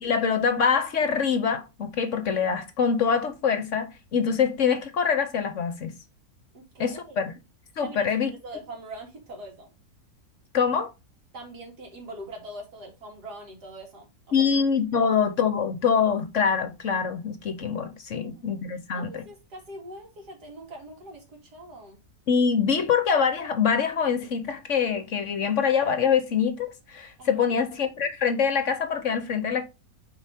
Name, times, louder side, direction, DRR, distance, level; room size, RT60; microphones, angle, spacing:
voice 1, 0.0-5.9 6.8-7.2 7.8-8.3 10.5-10.9 14.3-19.2 22.3-29.6, left 6 dB, 55° left, 1.1 m, -24 dB
voice 2, 6.5-7.3 7.8-9.7 11.3-14.5 18.1-18.5 18.9-22.0 27.2-27.5, right 1 dB, 80° right, 3.1 m, -43 dB
7.1 x 4.9 x 3.5 m
omnidirectional pair, 1.7 m